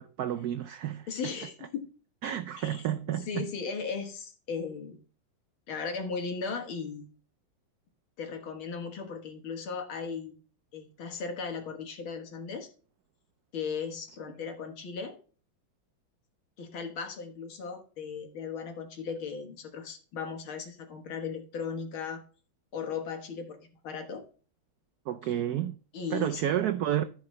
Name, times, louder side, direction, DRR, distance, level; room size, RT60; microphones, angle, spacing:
voice 1, 0.0-1.1 2.2-3.5 25.1-25.8 26.1-27.0, right 11 dB, 85° right, 0.8 m, -30 dB
voice 2, 1.1-1.9 2.6-2.8 3.3-5.0 5.7-7.1 8.2-10.3 10.7-12.7 13.5-15.2 16.6-22.2 22.7-23.6 23.8-24.2 25.2-25.3 25.9-26.4, left 5 dB, 80° left, 2.3 m, -37 dB
14.5 x 5.0 x 3.2 m
omnidirectional pair, 2.2 m